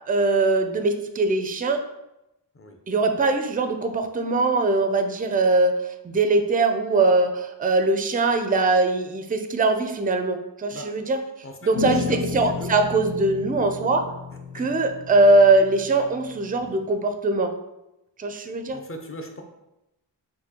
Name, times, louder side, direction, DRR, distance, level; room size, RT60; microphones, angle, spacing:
voice 1, 0.1-1.8 2.9-5.8 6.0-11.2 11.6-14.1 14.5-17.5 18.2-18.8, right 2 dB, 20° right, 7 dB, 0.4 m, -21 dB
voice 2, 11.4-12.7 14.5-14.7 18.7-19.4, left 1 dB, 30° left, 4 dB, 0.6 m, -39 dB
sound 1, 11.7-16.8, left 6 dB, 75° left, 0.6 m, -33 dB
4.2 x 2.2 x 2.8 m, 0.92 s
cardioid pair, 45°, 45 cm